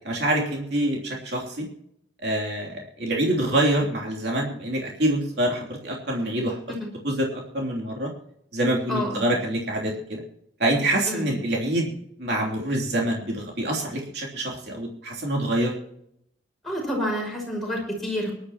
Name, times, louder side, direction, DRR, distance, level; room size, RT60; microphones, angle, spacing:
voice 1, 0.0-1.6 2.2-6.6 7.0-8.1 8.5-10.2 10.6-11.9 12.2-15.7, right 1 dB, 65° right, -1 dB, 3.2 m, -26 dB
voice 2, 8.9-9.3 11.1-11.3 16.6-18.3, equal, ahead, -1 dB, 5.5 m, -29 dB
24.5 x 11.5 x 3.0 m, 0.73 s
head